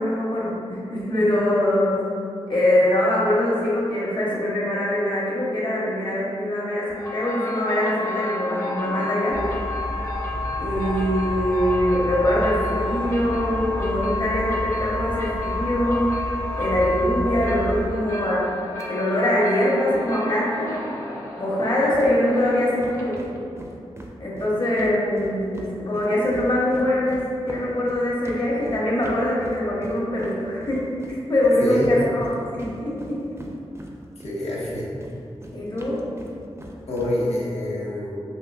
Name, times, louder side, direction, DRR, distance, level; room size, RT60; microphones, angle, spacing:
voice 1, 0.0-2.0 2.5-9.4 10.5-16.1 16.6-18.5 18.9-20.8 21.4-23.2 24.2-30.8 31.3-32.3 32.8-33.2 35.5-36.0, left 1 dB, 45° left, -6 dB, 0.9 m, -23 dB
sound 1, 6.9-23.4, left 2 dB, 25° left, 0.5 m, -31 dB
sound 2, 9.3-17.9, equal, 90° right, 0.4 m, -32 dB
sound 3, 22.0-22.1 22.4-22.5 22.8-25.7 25.9-34.3 34.6-37.1, right 1 dB, 25° right, 0.4 m, -39 dB
voice 2, 31.6-31.9 34.2-34.9 36.9-38.2, left 1 dB, 75° left, -6 dB, 0.6 m, -26 dB
3.7 x 2.6 x 2.3 m, 2.6 s
cardioid pair, 55°, 11 cm